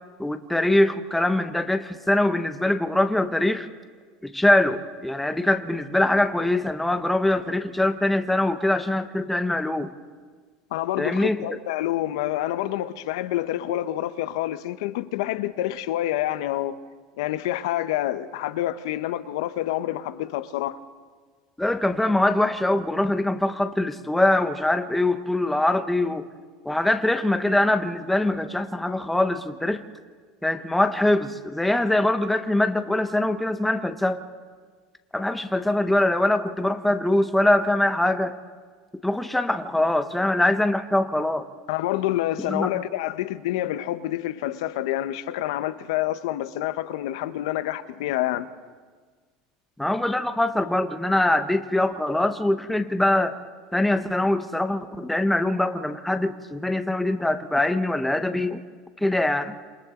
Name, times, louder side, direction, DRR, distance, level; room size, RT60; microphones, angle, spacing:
voice 1, 0.2-3.7 4.2-9.9 11.0-11.4 21.6-26.2 26.6-29.8 30.4-34.2 35.1-38.3 39.0-41.4 42.5-42.7 49.8-53.4 53.7-58.6 59.0-59.5, left 1 dB, 5° left, 1.1 m, -23 dB
voice 2, 10.7-16.8 17.2-20.8 41.7-48.5, left 14 dB, 85° left, 1.1 m, -27 dB
28.0 x 24.0 x 3.9 m
supercardioid pair, 125°, 3 cm